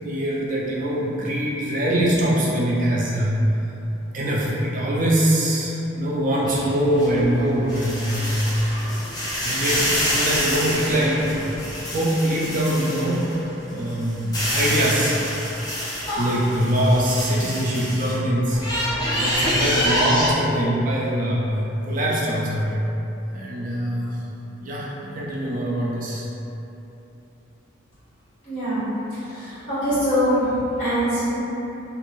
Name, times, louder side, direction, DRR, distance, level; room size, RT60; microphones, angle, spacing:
voice 1, 0.0-3.4 4.1-8.3 9.2-11.4 11.9-13.4 13.7-15.2 16.2-21.5 21.9-22.8 23.3-24.2 24.6-26.2, equal, 40° right, -5 dB, 0.3 m, -23 dB
sound 1, 6.5-13.4 13.8-18.2 18.5-20.3, equal, 20° left, 0.5 m, -26 dB
voice 2, 28.4-31.4, equal, 35° left, -19 dB, 1.4 m, -23 dB
2.6 x 2.4 x 3.0 m, 3.0 s
head